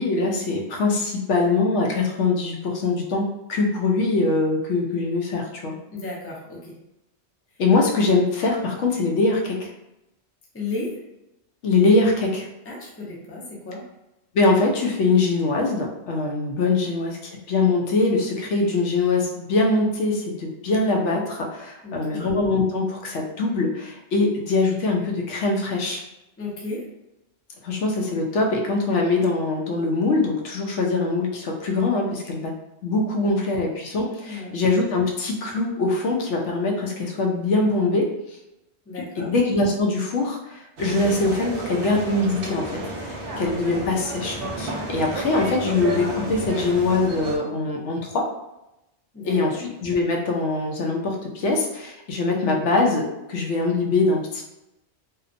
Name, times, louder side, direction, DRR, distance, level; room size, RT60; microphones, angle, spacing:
voice 1, 0.0-5.7 7.6-9.7 11.6-12.5 14.3-26.0 27.6-32.5 32.8-38.1 39.2-42.7 43.0-48.3 49.2-54.4, left 3 dB, 90° left, 0 dB, 0.9 m, -23 dB
voice 2, 5.9-6.8 10.5-11.0 12.6-13.8 21.8-22.2 26.4-26.9 33.2-33.6 34.2-34.6 38.9-39.3 49.1-49.6, left 3 dB, 20° left, -4 dB, 0.4 m, -34 dB
sound 1, 40.8-47.4, right 1 dB, 60° right, 0.7 m, -32 dB
2.8 x 2.1 x 2.5 m, 0.91 s
omnidirectional pair, 1.2 m